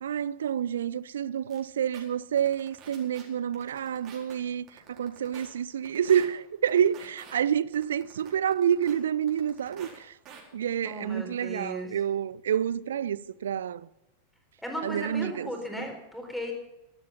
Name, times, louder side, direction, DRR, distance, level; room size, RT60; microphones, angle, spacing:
voice 1, 0.0-10.1 10.5-13.9 14.8-15.5 15.8-15.9, right 9 dB, 65° right, 0.4 m, -28 dB
sound 1, 1.5-1.6 1.9-2.0 2.4-3.2 3.5-4.3 4.7-5.5 5.8-6.3 6.7-7.3 7.7-8.9 9.3-10.0 10.2-10.4, right 7 dB, 35° right, 4.5 m, -47 dB
voice 2, 10.8-11.9 14.6-16.5, equal, ahead, 4.1 m, -36 dB
14.0 x 12.5 x 5.7 m
figure-of-eight pair, 90°, 0 cm